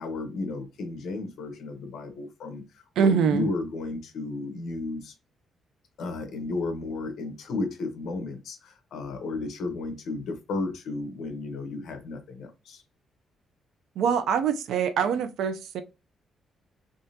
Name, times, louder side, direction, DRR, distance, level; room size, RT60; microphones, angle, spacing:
voice 1, 0.0-5.1 6.0-12.8, left 3 dB, 70° left, 1.0 m, -33 dB
voice 2, 3.0-3.5 14.0-15.8, right 7 dB, 75° right, 0.5 m, -24 dB
3.6 x 3.2 x 2.7 m
cardioid pair, 140°, 0 cm